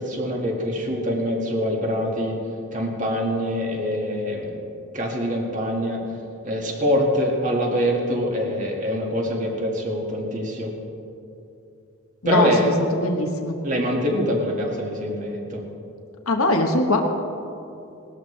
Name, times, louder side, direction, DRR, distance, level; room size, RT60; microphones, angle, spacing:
voice 1, 0.0-2.4 2.7-4.6 4.9-6.0 6.4-10.7 12.3-12.7 13.6-15.6, equal, 35° right, -1 dB, 2.1 m, -24 dB
voice 2, 12.2-13.6 16.3-17.0, left 2 dB, 85° left, 3 dB, 1.3 m, -21 dB
19.5 x 13.0 x 3.4 m, 2.7 s
head